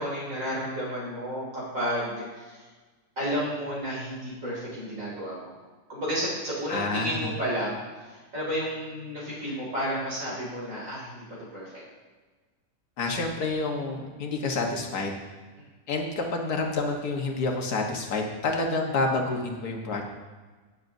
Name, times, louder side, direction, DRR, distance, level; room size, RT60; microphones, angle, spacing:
voice 1, 0.0-2.7 3.2-5.5 5.9-11.2 11.5-11.8, equal, 55° right, -6 dB, 3.1 m, -32 dB
voice 2, 6.7-7.3 13.0-15.1 15.9-20.1, left 3 dB, 85° left, 1 dB, 1.8 m, -28 dB
17.5 x 7.3 x 2.7 m, 1.3 s
omnidirectional pair, 1.6 m